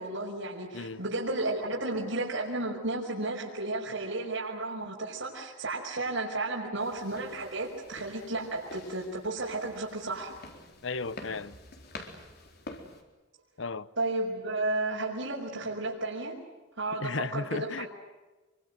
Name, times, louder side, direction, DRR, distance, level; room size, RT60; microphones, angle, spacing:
voice 1, 0.0-10.4 14.0-16.4 16.8-17.9, right 2 dB, 80° right, 5.6 m, -33 dB
sound 1, 6.8-13.0, left 2 dB, 55° left, 4.3 m, -48 dB
voice 2, 10.8-11.6 13.6-13.9 17.0-17.9, left 3 dB, 70° left, 0.9 m, -34 dB
27.0 x 24.5 x 8.0 m
head